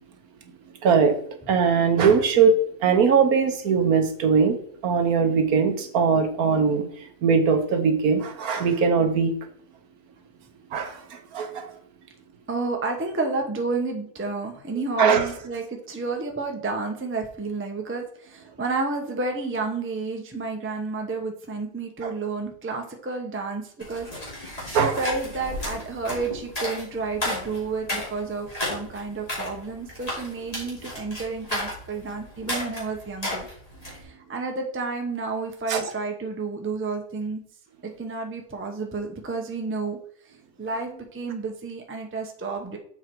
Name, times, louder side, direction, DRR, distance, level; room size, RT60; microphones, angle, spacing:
voice 1, 0.8-1.2 1.5-2.5 2.8-4.6 4.8-9.3 10.7-11.7 15.0-15.3 22.0-22.1 24.7-25.0 35.7-35.8, right 6 dB, 65° right, 6 dB, 1.4 m, -21 dB
voice 2, 12.5-24.1 24.4-33.5 34.0-37.4 37.8-40.0 40.6-42.8, right 3 dB, 10° right, 3 dB, 0.7 m, -31 dB
sound 1, 23.8-34.0, left 1 dB, 20° left, 3.0 m, -33 dB
7.3 x 4.6 x 4.6 m, 0.64 s
omnidirectional pair, 1.7 m